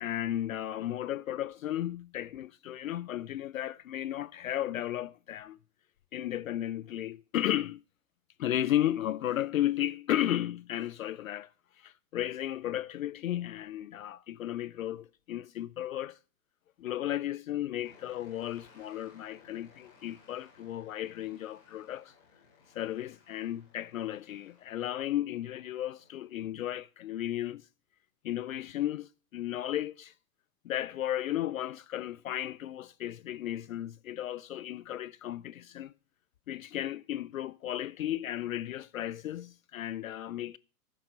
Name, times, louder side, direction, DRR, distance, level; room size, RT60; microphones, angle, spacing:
voice 1, 0.0-5.6 6.1-7.8 8.4-11.5 11.8-16.2 16.8-22.1 22.7-27.7 28.2-30.1 30.6-35.9 36.5-40.6, left 12 dB, 60° left, 0.5 m, -34 dB
sound 1, 17.8-26.5, left 5 dB, 25° left, 4.1 m, -61 dB
14.5 x 6.8 x 5.5 m
hypercardioid pair, 175°, 46 cm